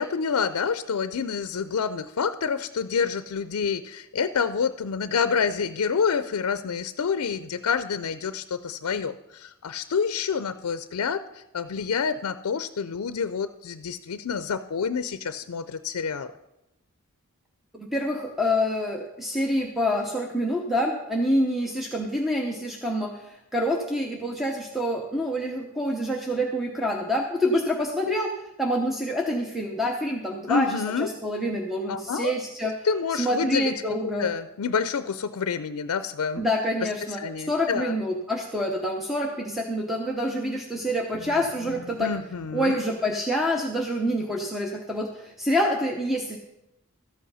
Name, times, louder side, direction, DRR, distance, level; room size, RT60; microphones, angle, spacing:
voice 1, 0.0-16.3 30.5-31.1 31.9-32.3 32.8-33.7 34.0-36.5 37.2-38.0 41.1-41.2 42.0-42.8, left 6 dB, 90° left, 12 dB, 0.5 m, -28 dB
voice 2, 17.7-28.3 28.6-32.7 33.1-34.3 36.4-37.2 37.5-42.1 42.5-46.4, equal, ahead, 0 dB, 0.8 m, -27 dB
13.0 x 8.4 x 5.5 m, 0.88 s
head